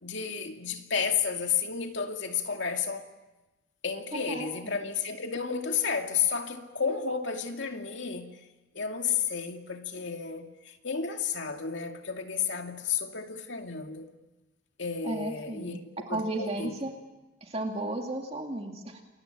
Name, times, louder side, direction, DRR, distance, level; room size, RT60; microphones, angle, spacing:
voice 1, 0.0-3.1 3.8-8.4 8.7-14.1 14.8-15.8 16.1-16.8, left 6 dB, 65° left, 2.4 m, -32 dB
voice 2, 4.1-4.8 15.0-15.8 16.1-16.9 17.4-19.0, right 2 dB, 30° right, 2.3 m, -34 dB
28.0 x 22.0 x 9.0 m
head